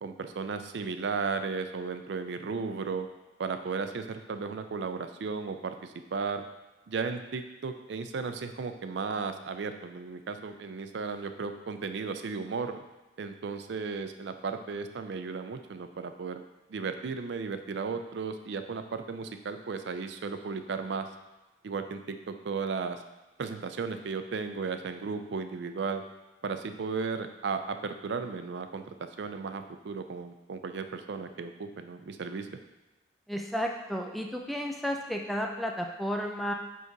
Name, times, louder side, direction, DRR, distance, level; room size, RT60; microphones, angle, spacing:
voice 1, 0.0-3.1 3.4-6.4 6.9-12.8 13.2-16.4 16.7-21.1 21.6-23.0 23.4-26.0 26.4-32.5, right 5 dB, 70° right, 8 dB, 0.4 m, -35 dB
voice 2, 33.3-36.5, equal, ahead, 1 dB, 0.4 m, -32 dB
5.1 x 4.9 x 3.9 m, 1.1 s
head